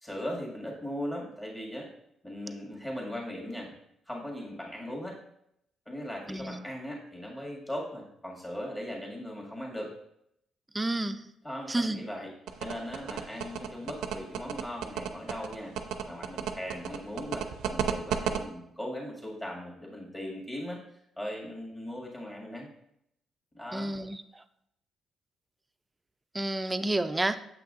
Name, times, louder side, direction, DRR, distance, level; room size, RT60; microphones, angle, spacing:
voice 1, 0.0-1.9 2.2-3.7 4.1-5.2 5.9-9.9 11.4-12.3 12.6-15.8 16.1-20.8 21.2-22.7 23.5-23.9, equal, 15° left, 2.0 m, -38 dB
voice 2, 10.7-11.2 11.7-12.0 23.7-24.2 26.4-27.4, right 2 dB, 15° right, 0.4 m, -29 dB
sound 1, 12.5-18.4, right 9 dB, 85° right, 0.5 m, -32 dB
7.2 x 5.8 x 2.5 m
cardioid pair, 90°, 0 cm